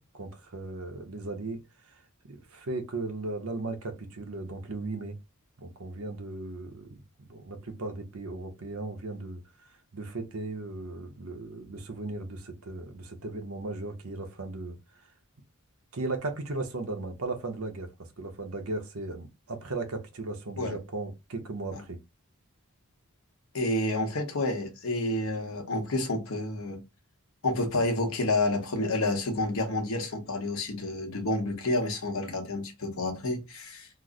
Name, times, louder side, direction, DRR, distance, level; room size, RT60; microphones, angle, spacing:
voice 1, 0.1-1.6 1.9-2.0 2.2-5.2 5.6-9.4 9.9-14.8 15.9-17.9 18.2-22.0, right 2 dB, 75° right, 0.8 m, -36 dB
voice 2, 23.5-26.8 27.4-33.9, left 2 dB, 70° left, 0.9 m, -29 dB
3.0 x 2.0 x 3.7 m
head